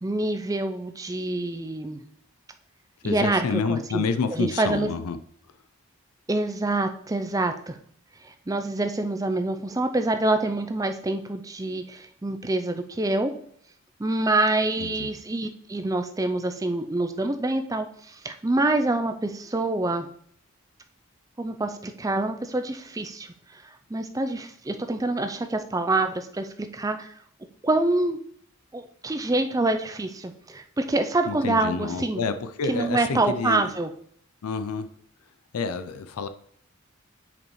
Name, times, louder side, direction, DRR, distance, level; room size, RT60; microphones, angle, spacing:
voice 1, 0.0-2.0 3.0-4.0 4.3-4.9 6.3-7.8 8.2-13.3 14.0-20.1 21.4-27.1 27.6-28.2 28.7-32.2 32.7-33.9, right 2 dB, 15° right, 0.4 m, -26 dB
voice 2, 3.0-5.2 14.8-15.1 31.3-33.7 34.4-34.9 35.5-36.3, left 5 dB, 80° left, 0.5 m, -29 dB
7.3 x 5.2 x 3.1 m
head